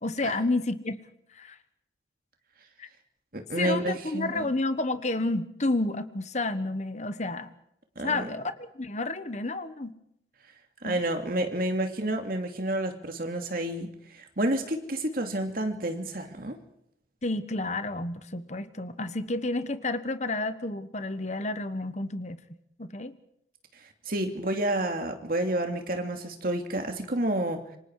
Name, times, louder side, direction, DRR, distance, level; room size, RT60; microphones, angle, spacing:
voice 1, 0.0-1.0 1.3-1.6 2.8-2.9 3.6-7.5 8.0-9.9 10.8-11.0 17.2-22.4 22.8-23.1, left 2 dB, 40° left, 11 dB, 1.2 m, -30 dB
voice 2, 3.3-4.4 8.0-8.3 10.8-16.6 24.1-27.6, right 1 dB, 50° right, 5 dB, 2.8 m, -29 dB
27.5 x 25.5 x 4.9 m, 0.75 s
head